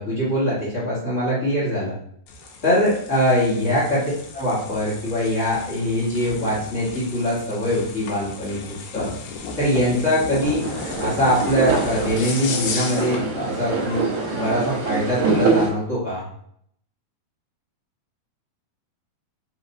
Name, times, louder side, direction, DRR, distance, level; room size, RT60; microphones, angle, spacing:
voice 1, 0.0-1.9 2.6-4.0 4.3-9.1 9.6-10.7 11.0-14.0 14.3-16.3, equal, 65° left, -9 dB, 0.7 m, -22 dB
sound 1, 2.3-13.3, left 4 dB, 85° left, 2.6 m, -34 dB
sound 2, 10.6-15.7, right 4 dB, 70° right, 2.0 m, -25 dB
5.5 x 3.2 x 2.7 m, 0.67 s
omnidirectional pair, 4.1 m